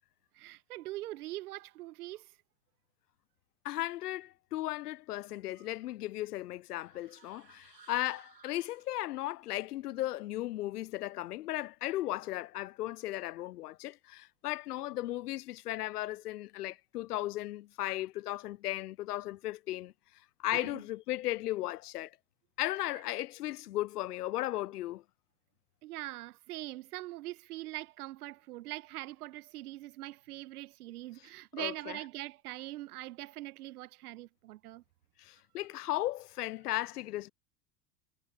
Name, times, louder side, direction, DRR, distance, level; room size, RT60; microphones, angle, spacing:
voice 1, 0.3-2.3 20.7-20.8 25.8-34.8, right 17 dB, 60° right, 1.2 m, -42 dB
voice 2, 3.6-19.9 20.4-22.2 22.6-25.0 31.5-32.0 35.2-37.3, left 15 dB, 65° left, 0.7 m, -36 dB
sound 1, 6.7-9.3, right 4 dB, 85° right, 5.4 m, -59 dB
figure-of-eight pair, 80°, 49 cm